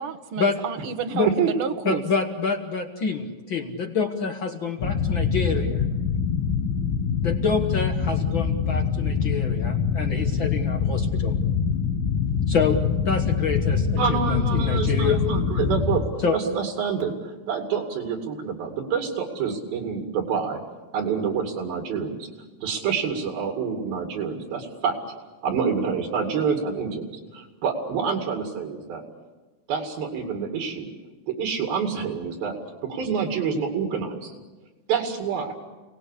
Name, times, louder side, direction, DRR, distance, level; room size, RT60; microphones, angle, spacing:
voice 1, 0.0-2.0, right 7 dB, 60° right, 9 dB, 1.5 m, -30 dB
voice 2, 1.8-5.7 7.2-11.3 12.5-12.8 13.0-15.2 16.2-16.4, left 5 dB, 60° left, 4 dB, 1.2 m, -27 dB
sound 1, 4.8-16.0, left 6 dB, 85° left, 3.4 m, -24 dB
voice 3, 14.0-16.0 16.3-20.6 20.9-22.3 22.6-24.9 25.4-29.0 29.7-30.9 31.3-32.5 32.8-34.3 34.9-35.5, right 6 dB, 80° right, 3 dB, 4.3 m, -27 dB
30.0 x 19.0 x 8.4 m, 1.2 s
omnidirectional pair, 4.2 m